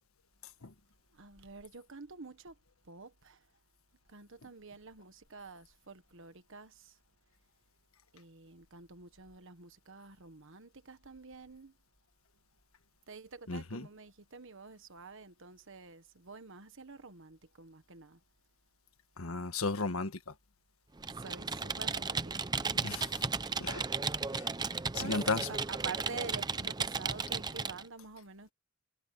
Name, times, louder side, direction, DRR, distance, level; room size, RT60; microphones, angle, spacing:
voice 1, 1.1-2.6 2.8-3.4 4.1-7.0 8.1-11.7 13.1-18.2 21.1-22.3 24.9-25.2 25.5-28.5, right 4 dB, 65° right, 1.4 m, -48 dB
voice 2, 13.5-13.9 19.2-20.3 22.8-23.2 23.6-23.8 24.3-24.5 24.9-25.5, left 3 dB, 85° left, 1.5 m, -35 dB
Computer keyboard, 21.0-27.8, right 4 dB, 20° right, 0.6 m, -35 dB
head